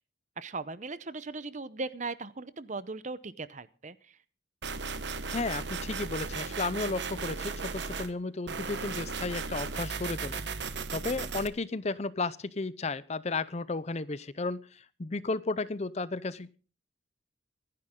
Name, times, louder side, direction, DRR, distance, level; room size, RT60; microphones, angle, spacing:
voice 1, 0.4-4.2, right 3 dB, 40° right, 15 dB, 0.8 m, -38 dB
sound 1, 4.6-8.1 8.5-11.5, right 4 dB, 60° right, 1.1 m, -36 dB
voice 2, 5.3-16.6, left 3 dB, 35° left, 17 dB, 0.6 m, -34 dB
25.0 x 10.5 x 3.7 m, 0.38 s
head